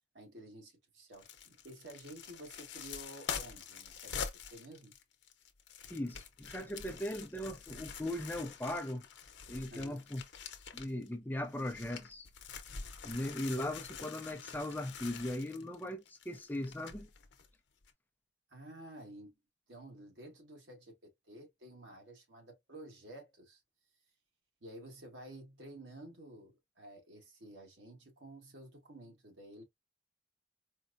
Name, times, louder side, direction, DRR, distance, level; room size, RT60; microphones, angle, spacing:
voice 1, 0.1-4.9 9.7-10.0 18.5-19.4 19.7-23.6 24.6-29.6, right 1 dB, 85° right, 1.6 m, -52 dB
sound 1, 1.1-11.1 11.4-17.5 17.8-17.9, left 6 dB, 80° left, 0.7 m, -46 dB
voice 2, 5.9-9.0 9.5-10.2 10.7-12.3 13.0-17.1, left 1 dB, 10° left, 0.5 m, -38 dB
4.4 x 2.1 x 2.6 m
head